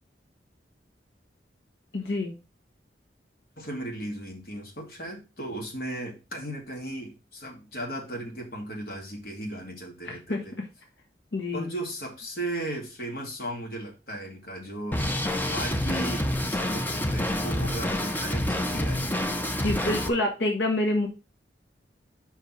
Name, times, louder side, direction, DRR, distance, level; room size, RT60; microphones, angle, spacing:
voice 1, 1.9-2.3 10.0-10.4 11.3-11.7 19.6-21.1, left 1 dB, 80° left, 2 dB, 1.6 m, -27 dB
voice 2, 3.6-10.5 11.5-15.1 15.5-19.2, right 1 dB, 55° left, 0 dB, 2.5 m, -36 dB
Drum kit, 14.9-20.1, left 1 dB, 10° left, 0.6 m, -28 dB
5.6 x 4.8 x 5.9 m, 0.29 s
head